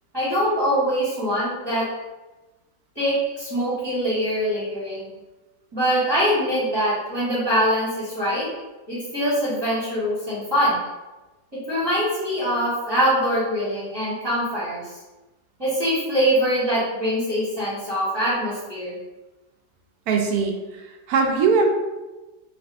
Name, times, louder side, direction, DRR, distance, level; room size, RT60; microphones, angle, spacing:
voice 1, 0.1-1.8 2.9-5.0 5.7-8.5 8.9-10.8 11.7-14.8 15.6-18.9, equal, 15° right, -10 dB, 1.0 m, -23 dB
voice 2, 20.1-21.7, right 4 dB, 70° right, 2 dB, 1.0 m, -21 dB
3.3 x 2.7 x 2.4 m, 1.1 s
omnidirectional pair, 1.8 m